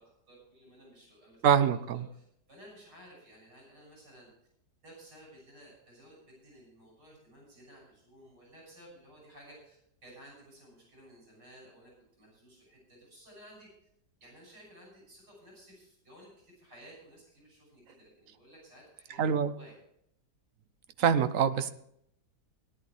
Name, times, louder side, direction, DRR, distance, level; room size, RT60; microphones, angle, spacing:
voice 1, 0.0-4.3 4.8-9.8 10.0-11.9 12.2-13.7 14.2-19.8, right 1 dB, 80° right, -3 dB, 7.0 m, -55 dB
voice 2, 1.4-2.0 19.2-19.5 21.0-21.7, right 8 dB, 60° right, 12 dB, 1.0 m, -25 dB
18.0 x 10.5 x 3.3 m, 0.73 s
omnidirectional pair, 1.8 m